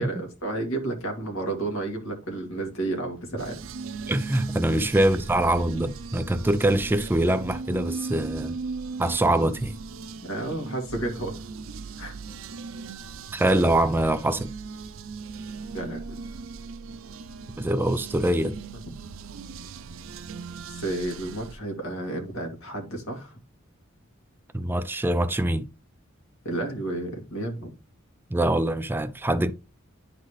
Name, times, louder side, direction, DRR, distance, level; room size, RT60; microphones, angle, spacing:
voice 1, 0.0-3.6 4.7-4.9 10.2-11.4 12.0-12.2 15.7-16.0 20.7-23.4 26.4-27.7, right 2 dB, 90° left, 2.1 m, -31 dB
sound 1, 3.4-21.5, right 4 dB, 70° right, 0.5 m, -38 dB
voice 2, 4.1-8.6 9.0-9.8 13.3-14.5 17.6-18.6 24.5-25.7 28.3-29.5, right 1 dB, 10° right, 0.3 m, -24 dB
10.5 x 4.0 x 3.2 m
head